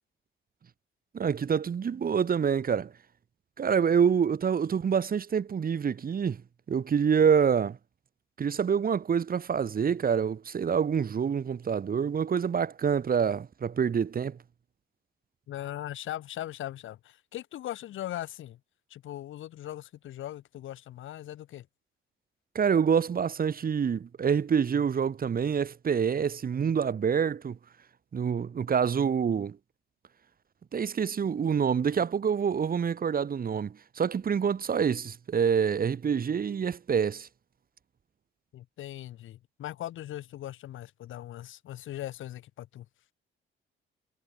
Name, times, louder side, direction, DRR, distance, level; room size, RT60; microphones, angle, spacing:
voice 1, 1.1-2.9 3.6-6.4 6.7-7.8 8.4-14.4 22.5-27.6 28.1-29.6 30.7-37.3, right 7 dB, 50° right, 4.4 m, -26 dB
voice 2, 15.5-18.6 18.9-21.7 38.5-42.9, left 13 dB, 80° left, 6.2 m, -39 dB
cardioid pair, 90°, 20 cm